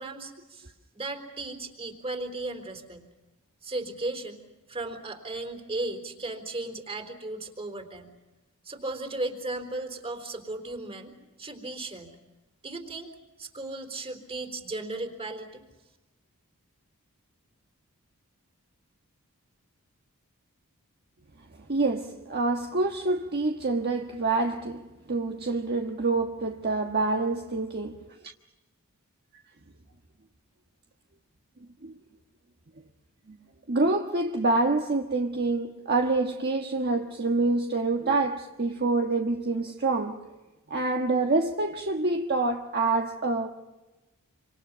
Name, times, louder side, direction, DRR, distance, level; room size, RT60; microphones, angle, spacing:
voice 1, 0.0-3.1 3.6-8.1 8.6-12.2 12.6-13.1 13.4-15.6, right 2 dB, 25° right, 4.0 m, -36 dB
voice 2, 21.7-24.8 25.1-28.0 31.8-31.9 33.3-33.4 33.7-40.3 40.7-43.5, right 3 dB, 45° right, 1.4 m, -26 dB
28.0 x 26.5 x 5.7 m
head